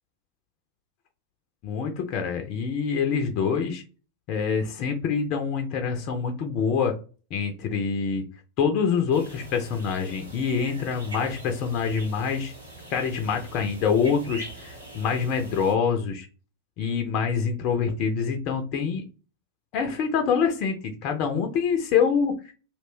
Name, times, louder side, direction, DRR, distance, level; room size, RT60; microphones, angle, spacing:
voice 1, 1.6-3.8 4.3-6.9 7.3-8.3 8.6-12.5 12.9-16.3 16.8-19.0 19.7-22.3, left 6 dB, 40° left, 5 dB, 0.5 m, -25 dB
sound 1, 9.1-15.7, right 2 dB, 80° right, 0.9 m, -43 dB
2.4 x 2.2 x 3.4 m, 0.35 s
figure-of-eight pair, 90°, 0 cm